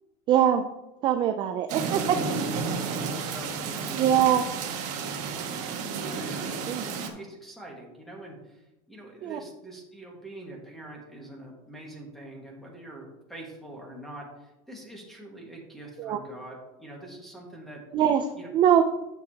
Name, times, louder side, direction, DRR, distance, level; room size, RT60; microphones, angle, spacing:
voice 1, 0.3-0.7 1.0-2.2 3.9-4.5 6.7-6.9 9.2-9.4 16.0-16.2 17.9-18.8, right 10 dB, 25° right, 7 dB, 0.3 m, -23 dB
sound 1, 1.7-7.1, right 5 dB, 40° right, 1.3 m, -32 dB
voice 2, 2.8-3.9 5.3-5.6 6.0-17.8 18.3-18.5, right 1 dB, ahead, -1 dB, 1.6 m, -44 dB
10.5 x 6.9 x 2.8 m, 0.98 s
supercardioid pair, 160°, 19 cm